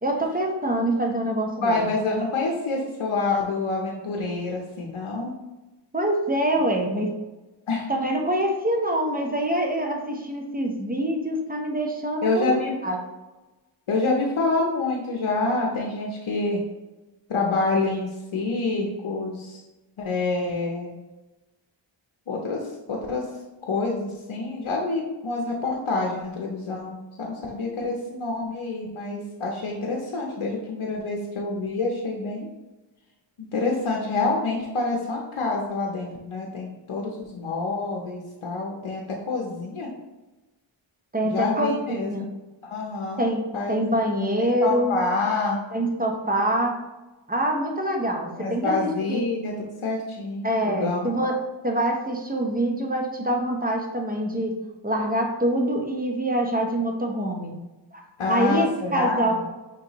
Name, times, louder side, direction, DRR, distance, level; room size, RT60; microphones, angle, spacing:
voice 1, 0.0-1.9 5.9-7.1 7.9-12.6 12.8-13.0 41.1-41.7 42.1-42.3 43.2-43.4 43.7-44.9 45.7-46.8 47.3-48.7 49.1-49.2 50.4-51.3 51.6-54.5 54.8-57.5 58.3-59.3, right 1 dB, 20° right, 1 dB, 0.9 m, -25 dB
voice 2, 1.6-5.3 7.7-7.9 12.2-12.7 13.9-16.6 17.3-19.6 20.0-20.9 22.3-22.6 22.9-23.2 23.7-32.5 33.4-39.0 39.3-39.9 41.2-42.1 42.6-43.3 43.5-43.7 44.4-45.6 48.4-51.2 58.2-59.4, left 3 dB, 85° left, 0 dB, 0.7 m, -27 dB
5.5 x 3.1 x 2.9 m, 1.1 s
wide cardioid pair, 45°, 48 cm